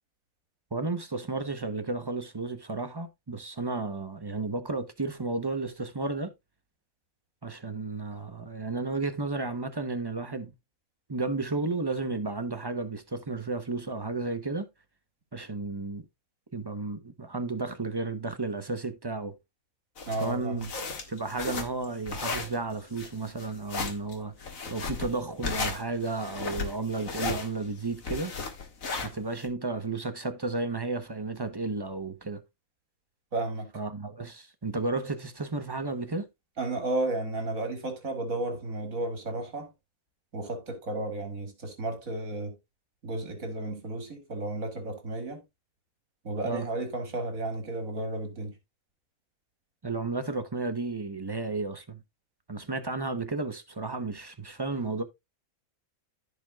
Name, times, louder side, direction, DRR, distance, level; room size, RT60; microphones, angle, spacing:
voice 1, 0.7-6.3 7.4-10.5 11.1-14.7 15.3-16.0 16.5-19.4 20.2-20.7 21.1-24.3 24.7-28.3 29.0-32.4 33.7-36.3 46.4-46.7 49.8-52.0 52.5-55.0, right 3 dB, 25° right, 0.6 m, -33 dB
sound 1, 20.0-29.4, left 4 dB, 70° left, 2.0 m, -35 dB
voice 2, 20.1-20.7 33.3-33.7 36.6-39.7 40.3-42.5 43.0-45.4 46.2-48.5, right 2 dB, 70° right, 2.7 m, -33 dB
14.5 x 5.1 x 2.3 m
omnidirectional pair, 1.5 m